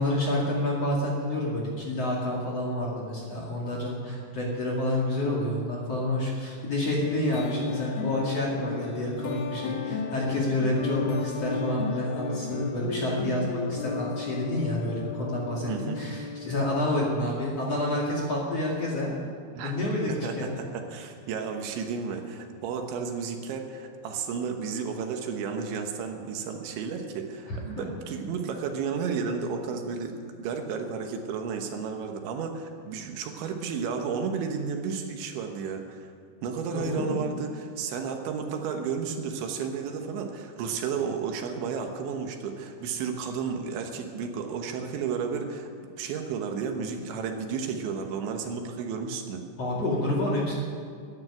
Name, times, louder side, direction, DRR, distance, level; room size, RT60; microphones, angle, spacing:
voice 1, 0.0-19.2 19.6-20.5 27.5-27.8 36.7-37.2 49.6-50.6, left 1 dB, 45° left, -3 dB, 2.5 m, -29 dB
sound 1, 7.0-17.6, left 5 dB, 65° left, 3.2 m, -34 dB
voice 2, 15.7-16.0 19.6-19.7 20.1-36.1 36.4-45.7 46.0-49.4, right 6 dB, 75° right, 4 dB, 3.5 m, -32 dB
13.5 x 10.5 x 10.0 m, 2.2 s
omnidirectional pair, 5.5 m